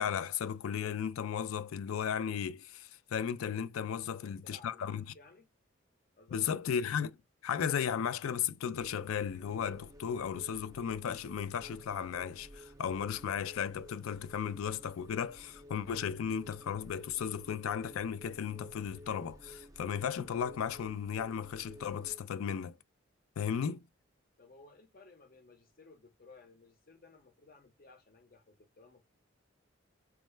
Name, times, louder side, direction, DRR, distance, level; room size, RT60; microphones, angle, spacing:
voice 1, 0.0-5.0 6.3-7.2 7.4-22.8 23.4-23.8, left 8 dB, 85° left, 0.4 m, -35 dB
voice 2, 3.8-5.5 6.2-6.4 24.4-29.1, left 3 dB, 45° left, 0.7 m, -58 dB
sound 1, 8.7-22.2, equal, 15° right, 0.5 m, -54 dB
4.6 x 2.1 x 3.1 m
head